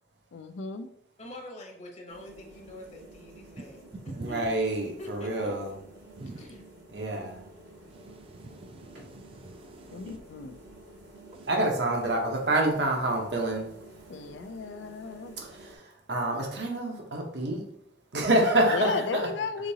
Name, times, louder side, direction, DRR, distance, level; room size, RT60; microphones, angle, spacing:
voice 1, 0.3-0.9 9.9-10.6 14.1-15.4 18.7-19.7, left 5 dB, 90° left, 0.4 m, -34 dB
voice 2, 1.2-4.4 5.0-5.6 6.4-6.6, left 1 dB, 40° left, 0.9 m, -45 dB
sound 1, 2.1-15.8, right 1 dB, 90° right, 1.5 m, -51 dB
voice 3, 4.2-5.7 6.9-7.5 11.5-13.7 15.4-17.6 18.1-19.3, right 1 dB, 70° right, 1.0 m, -27 dB
voice 4, 8.1-10.0 11.3-11.5, right 2 dB, 30° right, 0.4 m, -46 dB
5.1 x 3.7 x 2.8 m
head